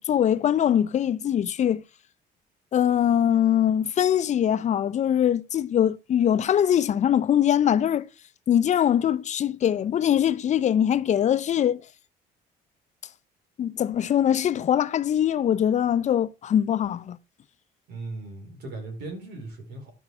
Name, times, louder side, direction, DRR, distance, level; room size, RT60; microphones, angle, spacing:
voice 1, 0.0-1.8 2.7-8.1 8.5-11.8 13.6-17.2, left 10 dB, 45° left, 0.6 m, -22 dB
voice 2, 17.9-19.9, right 2 dB, 80° right, 4.7 m, -38 dB
11.0 x 5.9 x 4.8 m
cardioid pair, 110°, 17 cm